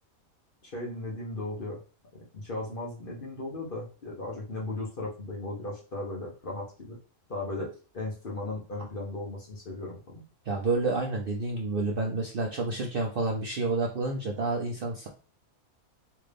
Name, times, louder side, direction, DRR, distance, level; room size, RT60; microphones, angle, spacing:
voice 1, 0.6-1.8 2.3-7.0 7.3-10.2, left 2 dB, 40° left, -3 dB, 1.1 m, -36 dB
voice 2, 10.5-15.1, right 3 dB, 55° right, 0 dB, 0.6 m, -29 dB
3.3 x 2.6 x 3.4 m, 0.36 s
omnidirectional pair, 1.5 m